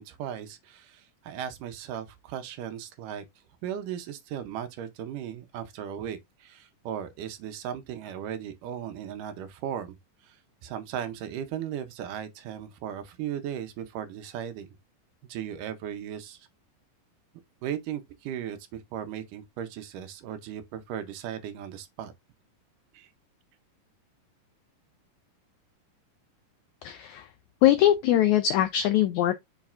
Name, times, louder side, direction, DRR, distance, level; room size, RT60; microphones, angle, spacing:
voice 1, 0.0-3.3 3.6-10.0 10.2-10.4 10.6-14.7 15.3-16.5 17.6-22.1 22.9-23.1, right 9 dB, 75° right, 2.2 m, -37 dB
voice 2, 26.8-27.3 27.6-29.3, left 12 dB, 85° left, 1.6 m, -22 dB
7.2 x 5.6 x 2.5 m
omnidirectional pair, 4.0 m